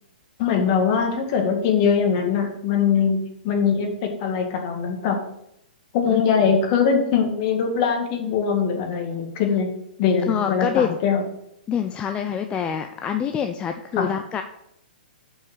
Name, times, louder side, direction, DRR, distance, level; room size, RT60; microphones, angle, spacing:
voice 1, 0.4-5.2 5.9-9.7 10.0-11.2 14.0-14.1, left 6 dB, 45° left, 3 dB, 2.0 m, -22 dB
voice 2, 10.3-11.0 11.7-14.4, left 8 dB, 20° left, 6 dB, 0.5 m, -25 dB
7.4 x 5.6 x 6.8 m, 0.79 s
figure-of-eight pair, 120°, 5 cm